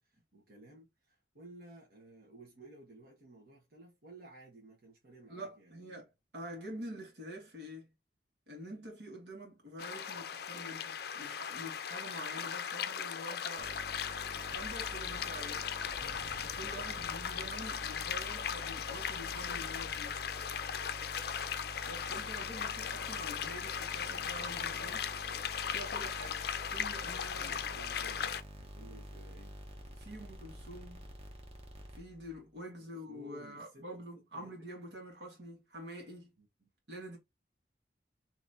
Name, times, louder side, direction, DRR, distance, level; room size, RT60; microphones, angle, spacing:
voice 1, 0.0-6.0 22.7-23.1 27.3-28.4 28.7-29.6 32.8-33.9 34.3-34.5 36.4-36.7, right 2 dB, 55° right, 1.3 m, -55 dB
voice 2, 5.3-6.1 6.3-7.9 8.5-13.7 14.1-15.7 16.4-20.2 21.8-25.1 25.7-27.5 28.2-28.3 30.0-31.1 31.9-36.3 36.9-37.2, equal, 75° right, 1.6 m, -47 dB
sound 1, 9.8-28.4, left 8 dB, 60° left, 0.4 m, -38 dB
sound 2, 13.6-32.4, equal, 35° right, 0.9 m, -49 dB
3.9 x 2.9 x 2.6 m
head